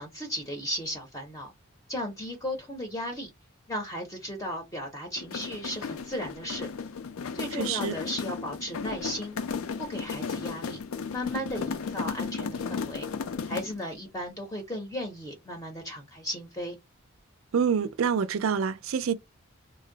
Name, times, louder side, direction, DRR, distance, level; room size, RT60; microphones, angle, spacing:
voice 1, 0.0-1.5 1.9-3.3 3.7-6.7 7.3-9.4 9.8-10.8 11.1-13.1 13.5-16.7, equal, 15° left, 0.5 m, -35 dB
sound 1, 5.2-13.8, left 5 dB, 75° left, 0.4 m, -35 dB
voice 2, 7.5-8.0 17.5-19.1, right 7 dB, 70° right, 0.4 m, -27 dB
2.5 x 2.0 x 3.8 m
head